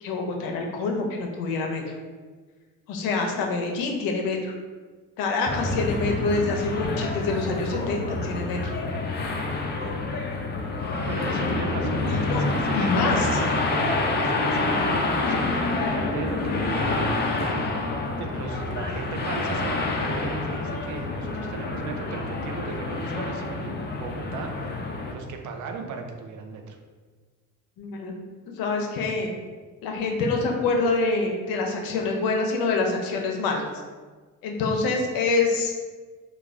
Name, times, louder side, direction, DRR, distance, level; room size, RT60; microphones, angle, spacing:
voice 1, 0.0-1.9 2.9-4.5 5.2-8.7 12.1-12.4 12.7-13.3 27.8-28.1 28.6-29.3 29.8-33.6 34.4-35.7, left 3 dB, 85° left, 2 dB, 0.6 m, -26 dB
sound 1, 5.5-25.1, left 3 dB, 30° left, 0.4 m, -27 dB
voice 2, 11.1-17.0 17.4-17.7 18.2-24.5 25.1-26.8, right 4 dB, 60° right, 4 dB, 0.5 m, -36 dB
3.1 x 2.3 x 2.4 m, 1.4 s
cardioid pair, 90°, 34 cm